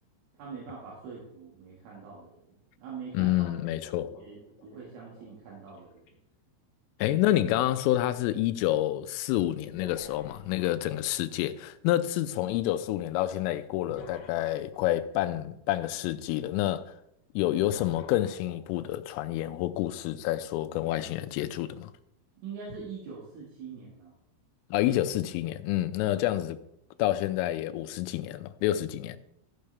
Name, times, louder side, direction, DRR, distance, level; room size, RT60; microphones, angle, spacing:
voice 1, 0.4-3.5 4.1-6.2 22.4-24.1, right 5 dB, 75° right, 4.5 m, -44 dB
voice 2, 3.1-4.1 7.0-16.9 17.4-21.9 24.7-26.6 27.0-29.2, left 14 dB, 85° left, 3.1 m, -28 dB
sound 1, 3.4-6.1 8.0-8.1 9.6-11.4 13.9-15.2 17.6-19.1 19.9-20.0 21.2-21.4 22.7-22.8, left 3 dB, 65° left, 2.8 m, -50 dB
14.5 x 6.7 x 3.4 m
omnidirectional pair, 5.9 m